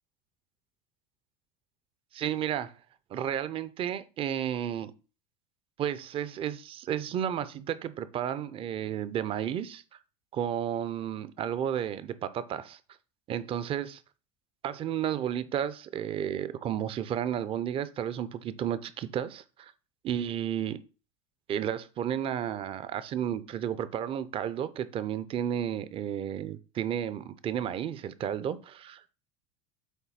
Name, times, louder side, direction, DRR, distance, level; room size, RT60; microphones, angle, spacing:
voice 1, 2.1-2.7 3.1-4.9 5.8-9.8 10.3-12.8 13.3-14.0 14.6-19.7 20.0-20.8 21.5-29.0, right 9 dB, 30° right, 0.6 m, -32 dB
8.0 x 2.7 x 5.7 m
supercardioid pair, 140°, 18 cm